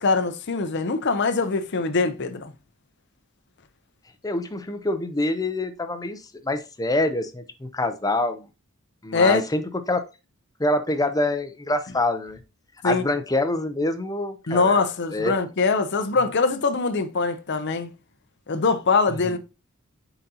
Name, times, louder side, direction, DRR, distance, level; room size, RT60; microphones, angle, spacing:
voice 1, 0.0-2.5 9.1-9.4 12.8-13.0 14.5-17.9 18.5-19.4, left 4 dB, 55° left, 0.7 m, -22 dB
voice 2, 4.2-8.5 9.0-10.0 10.6-12.4 12.8-14.8 15.1-15.3 19.1-19.4, left 1 dB, 15° left, 0.6 m, -26 dB
9.2 x 4.0 x 2.8 m
head